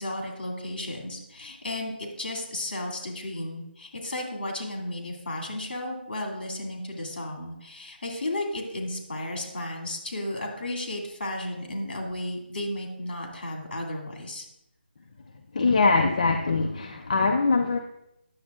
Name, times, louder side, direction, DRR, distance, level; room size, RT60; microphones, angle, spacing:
voice 1, 0.0-14.4, left 1 dB, 60° left, 0 dB, 2.4 m, -34 dB
voice 2, 15.5-17.8, left 3 dB, 35° left, 3 dB, 0.4 m, -22 dB
9.7 x 7.1 x 2.4 m, 0.85 s
hypercardioid pair, 170°, 6 cm